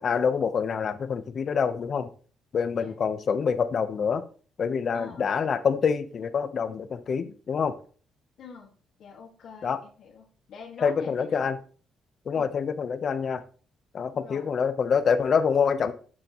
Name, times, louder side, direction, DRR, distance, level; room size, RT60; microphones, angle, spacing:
voice 1, 0.0-2.1 2.5-4.2 4.6-7.7 9.6-9.8 10.8-11.6 12.3-13.4 13.9-15.9, left 6 dB, 50° left, 11 dB, 1.0 m, -26 dB
voice 2, 4.9-5.3 8.4-8.7 9.0-11.5 12.3-12.5 14.1-14.5, left 5 dB, 70° left, -2 dB, 2.1 m, -45 dB
12.0 x 7.5 x 3.1 m, 0.42 s
cardioid pair, 90°, 0 cm